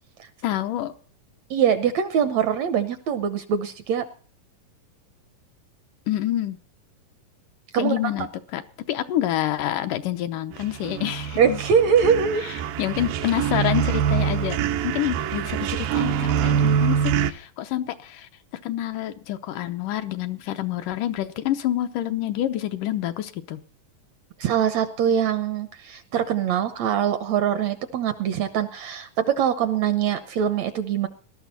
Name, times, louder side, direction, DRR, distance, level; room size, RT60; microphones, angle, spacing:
voice 1, 0.4-0.9 6.1-6.6 7.8-8.6 8.9-11.6 12.4-14.6 14.8-18.3 18.6-23.6, left 12 dB, 75° left, 8 dB, 2.4 m, -27 dB
voice 2, 1.5-4.0 7.7-8.0 11.4-12.4 24.4-31.1, right 8 dB, 70° right, 11 dB, 1.8 m, -23 dB
sound 1, 10.5-17.3, right 8 dB, 85° right, 2.6 m, -24 dB
19.0 x 12.5 x 4.2 m, 0.40 s
omnidirectional pair, 3.9 m